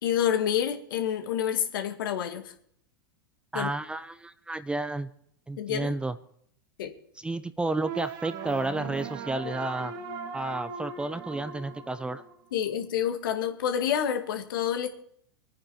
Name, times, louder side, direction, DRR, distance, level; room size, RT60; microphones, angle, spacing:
voice 1, 0.0-2.5 3.5-3.7 5.6-6.0 6.8-6.9 12.5-14.9, left 9 dB, 65° left, 6 dB, 2.2 m, -28 dB
voice 2, 3.5-5.1 5.5-6.2 7.2-9.9 10.3-12.2, right 2 dB, 10° right, 13 dB, 0.8 m, -31 dB
sound 1, 7.7-12.8, right 6 dB, 55° right, 2.0 m, -39 dB
25.0 x 9.6 x 4.4 m, 0.66 s
hypercardioid pair, 95°, 12 cm